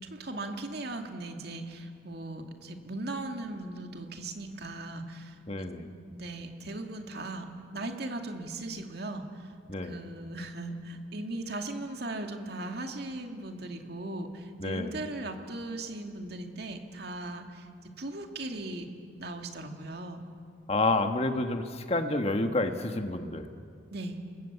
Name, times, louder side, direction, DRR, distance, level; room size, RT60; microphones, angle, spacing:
voice 1, 0.0-7.5 7.7-9.5 9.8-17.7 18.0-18.9 19.2-20.2 23.9-24.2, right 2 dB, 55° right, 4 dB, 2.4 m, -38 dB
voice 2, 5.5-5.9 9.7-10.0 14.6-15.0 20.7-23.5, left 2 dB, 30° left, 6 dB, 1.5 m, -29 dB
29.5 x 21.0 x 8.2 m, 2.3 s
head